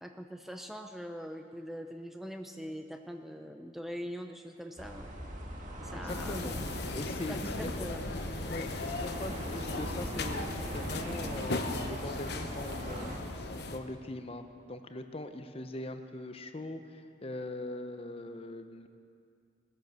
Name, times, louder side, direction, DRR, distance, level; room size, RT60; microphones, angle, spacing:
voice 1, 0.0-5.1 5.8-6.5 7.3-8.1, equal, ahead, 5 dB, 0.6 m, -42 dB
sound 1, 4.8-13.2, equal, 40° right, 1.9 m, -40 dB
voice 2, 5.9-6.5 6.9-7.9 8.5-18.9, left 1 dB, 30° left, 8 dB, 0.8 m, -41 dB
sound 2, 6.1-13.8, left 2 dB, 60° left, 1.0 m, -38 dB
19.5 x 10.5 x 6.8 m, 2.4 s
head